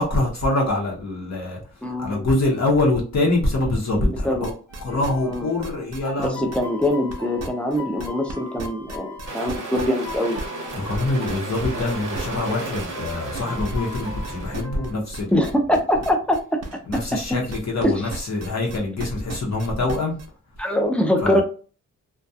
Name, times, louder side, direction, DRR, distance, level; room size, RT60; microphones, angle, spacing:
voice 1, 0.0-4.5 4.8-6.4 10.7-15.3 16.8-20.2 21.2-21.4, left 2 dB, 55° left, 0.8 m, -24 dB
voice 2, 1.8-2.2 4.2-4.5 5.2-5.5 6.2-10.4 15.3-16.6 17.1-17.2 17.8-17.9 20.6-21.4, left 1 dB, 5° left, 0.4 m, -23 dB
sound 1, 4.4-8.3 8.6-17.8 18.1-20.3, right 3 dB, 55° right, 0.5 m, -35 dB
sound 2, 4.7-14.9, left 2 dB, 85° left, 1.1 m, -39 dB
sound 3, 9.2-14.6, right 3 dB, 90° right, 0.8 m, -34 dB
2.3 x 2.2 x 2.6 m
wide cardioid pair, 110°, 31 cm